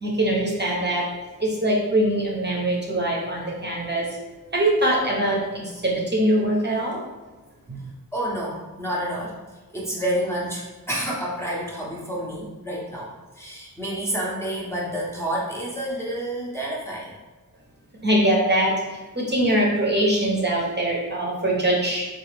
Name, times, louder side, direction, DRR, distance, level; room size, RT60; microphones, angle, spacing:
voice 1, 0.0-1.1 1.4-4.1 4.5-7.0 7.7-7.8 18.0-22.1, right 1 dB, 30° right, -4 dB, 0.7 m, -22 dB
voice 2, 8.1-9.3 9.7-17.1, right 1 dB, 5° left, -6 dB, 0.7 m, -29 dB
3.6 x 2.4 x 3.3 m, 1.3 s
wide cardioid pair, 100°, 36 cm